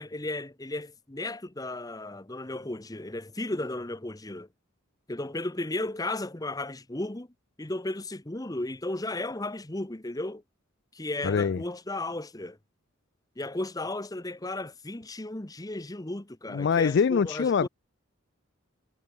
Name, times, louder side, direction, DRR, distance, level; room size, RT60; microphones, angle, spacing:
voice 1, 0.0-4.5 5.1-7.3 7.6-10.4 10.9-12.6 13.4-17.7, left 2 dB, 15° left, 0.9 m, -34 dB
voice 2, 11.2-11.6 16.5-17.7, left 6 dB, 55° left, 0.3 m, -24 dB
head